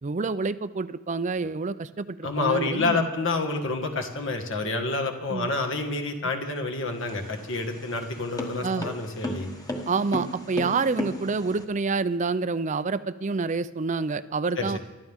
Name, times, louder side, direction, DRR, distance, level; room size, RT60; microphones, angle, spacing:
voice 1, 0.0-3.1 5.3-5.5 8.6-8.9 9.9-14.8, right 4 dB, 35° right, 14 dB, 0.4 m, -28 dB
voice 2, 2.2-9.5 14.6-14.8, left 3 dB, 60° left, 4 dB, 1.7 m, -28 dB
sound 1, 6.9-11.6, left 1 dB, 15° left, 1.3 m, -35 dB
24.5 x 12.5 x 3.6 m, 1.2 s
head